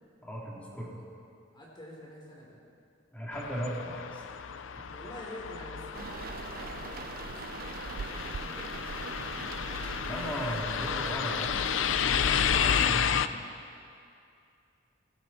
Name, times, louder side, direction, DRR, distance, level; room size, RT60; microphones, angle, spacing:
voice 1, 0.2-0.9 3.1-4.3 10.0-11.8 12.4-13.3, equal, 10° left, -5 dB, 3.3 m, -37 dB
voice 2, 1.5-2.6 4.8-9.5 10.3-10.6, equal, 25° left, -4 dB, 3.3 m, -48 dB
sound 1, 3.3-13.3, left 8 dB, 75° left, 0.5 m, -31 dB
sound 2, 5.9-13.1, right 6 dB, 50° right, 0.4 m, -42 dB
19.5 x 16.5 x 4.3 m, 2.5 s
head